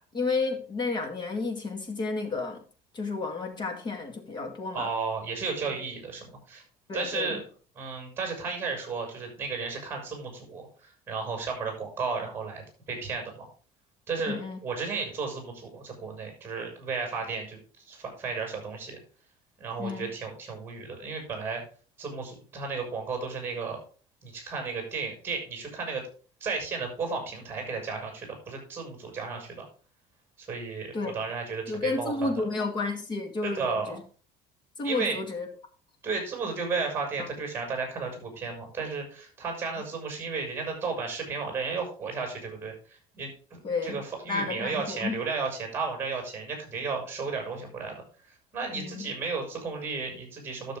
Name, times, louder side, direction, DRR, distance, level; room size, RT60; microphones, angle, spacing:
voice 1, 0.1-2.6 2.9-4.9 6.9-7.4 14.3-14.6 19.8-20.1 30.9-31.1 31.7-34.0 34.8-35.5 37.2-37.3 43.6-45.2 48.7-49.1, left 3 dB, 30° left, 5 dB, 2.1 m, -31 dB
voice 2, 4.7-6.6 6.9-7.4 7.8-13.4 14.1-17.6 17.9-19.0 19.6-21.6 22.0-23.8 24.2-26.0 26.4-29.6 30.4-32.3 33.4-34.0 34.8-35.2 36.0-48.0 48.5-50.8, right 4 dB, 15° right, 2 dB, 6.5 m, -33 dB
12.5 x 6.9 x 3.8 m, 0.39 s
cardioid pair, 150°, 15 cm